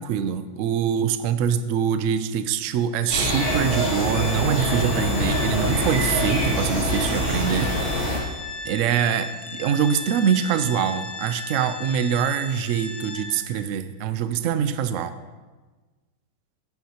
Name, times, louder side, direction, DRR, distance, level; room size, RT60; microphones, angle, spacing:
voice 1, 0.0-7.7 8.1-8.4 8.6-15.1, right 8 dB, 85° right, 11 dB, 0.6 m, -24 dB
Organ, 3.0-13.7, left 3 dB, 55° left, 0.4 m, -36 dB
sound 1, 3.1-8.2, left 1 dB, 30° right, 3.6 m, -24 dB
12.0 x 9.3 x 2.9 m, 1.3 s
omnidirectional pair, 2.0 m